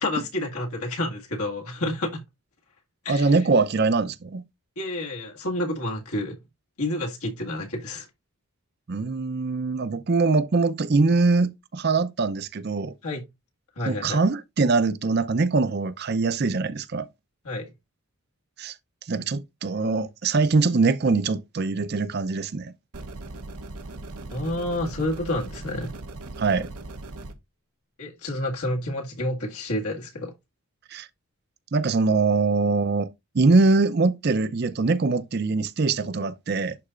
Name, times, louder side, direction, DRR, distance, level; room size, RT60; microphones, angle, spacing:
voice 1, 0.0-2.2 3.0-3.3 4.8-6.4 6.8-8.1 13.0-13.2 13.8-14.2 17.4-17.7 24.3-25.9 28.0-30.3, left 1 dB, 85° left, 1.9 m, -29 dB
voice 2, 3.1-4.4 8.9-12.9 13.9-17.1 18.6-18.7 19.1-22.7 26.4-26.7 30.9-31.1 31.7-33.1 33.3-36.8, right 3 dB, 45° right, 0.5 m, -23 dB
sound 1, 22.9-27.3, right 2 dB, 85° right, 0.9 m, -39 dB
11.5 x 4.0 x 2.4 m
head